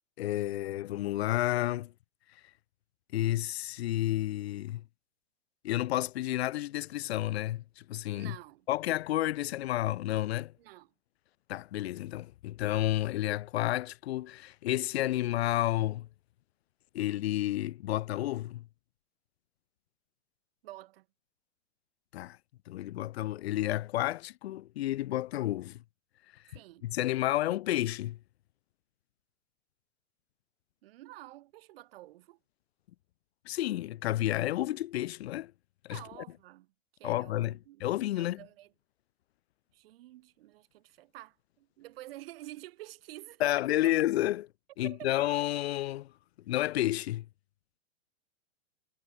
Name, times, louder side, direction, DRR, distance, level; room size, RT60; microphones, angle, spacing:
voice 1, 0.2-1.9 3.1-4.8 5.6-8.4 8.7-10.5 11.5-16.1 16.9-18.7 22.1-22.4 22.7-25.8 26.8-28.2 33.5-35.5 35.8-36.0 37.0-38.4 43.4-44.5 44.8-46.1 46.5-47.3, left 15 dB, 55° left, 0.6 m, -31 dB
voice 2, 8.1-8.6 10.6-10.9 20.6-21.1 26.5-26.9 30.8-32.4 35.9-36.7 37.0-37.8 38.2-38.7 39.7-43.5 44.8-45.2, right 16 dB, 45° right, 4.7 m, -49 dB
supercardioid pair, 165°, 39 cm